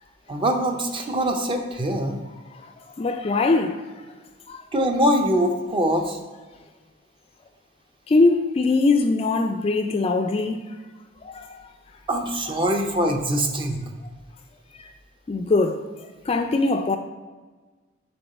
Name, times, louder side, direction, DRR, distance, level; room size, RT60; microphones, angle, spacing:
voice 1, 0.3-2.2 4.7-6.2 12.1-13.8, equal, 25° right, 0.6 m, -23 dB
voice 2, 3.0-3.8 4.5-4.6 8.1-10.6 11.2-11.5 15.3-15.8 16.3-17.0, left 3 dB, 30° left, 0.3 m, -21 dB
6.9 x 3.6 x 4.1 m
head